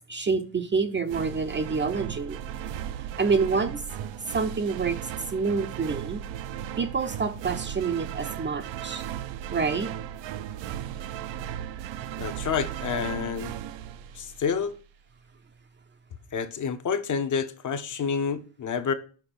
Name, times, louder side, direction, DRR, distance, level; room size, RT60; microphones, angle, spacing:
voice 1, 0.1-2.4 3.2-3.8 4.3-5.0 5.3-6.2 6.8-9.0 9.5-9.9, right 4 dB, 25° right, 0.6 m, -27 dB
sound 1, 1.1-14.7, right 10 dB, 75° right, 0.7 m, -36 dB
voice 2, 12.2-13.5 14.2-14.7 16.3-18.9, left 6 dB, 40° left, 0.9 m, -28 dB
5.9 x 5.3 x 6.8 m
cardioid pair, 145°, 45 cm